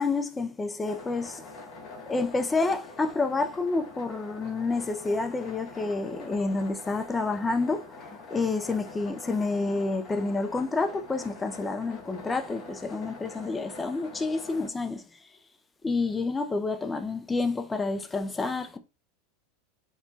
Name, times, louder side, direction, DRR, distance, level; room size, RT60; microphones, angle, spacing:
voice 1, 0.0-1.4 2.1-15.0 15.8-18.8, left 3 dB, 15° left, 0.4 m, -29 dB
sound 1, 0.9-14.7, left 3 dB, 50° left, 1.1 m, -45 dB
4.4 x 2.2 x 2.6 m
supercardioid pair, 125°, 0 cm